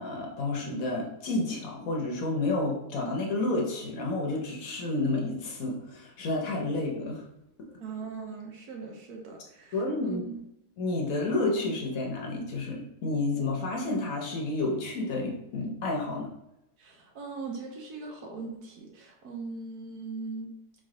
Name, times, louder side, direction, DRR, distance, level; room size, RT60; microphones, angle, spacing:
voice 1, 0.0-7.2 9.7-10.2 10.8-16.3, left 2 dB, 60° left, -1 dB, 1.2 m, -30 dB
voice 2, 7.8-10.4 16.8-20.5, right 4 dB, 75° right, 1 dB, 1.4 m, -40 dB
4.2 x 3.2 x 3.8 m, 0.83 s
omnidirectional pair, 1.7 m